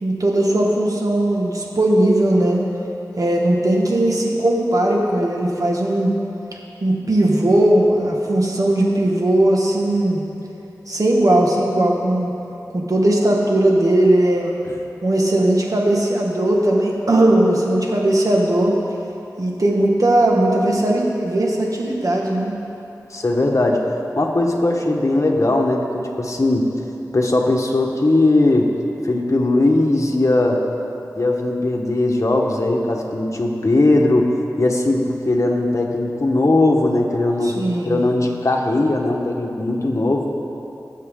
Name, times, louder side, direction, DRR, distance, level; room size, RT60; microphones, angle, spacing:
voice 1, 0.0-2.6 3.2-6.1 6.8-10.2 10.9-12.3 12.7-14.5 15.0-18.7 19.4-22.5 37.4-38.0, right 1 dB, 60° right, -1 dB, 1.8 m, -18 dB
voice 2, 23.1-23.9 24.2-26.7 27.1-28.7 29.0-30.6 31.1-40.3, left 2 dB, 50° left, 1 dB, 1.4 m, -19 dB
19.5 x 7.4 x 3.9 m, 2.9 s
cardioid pair, 45°, 7 cm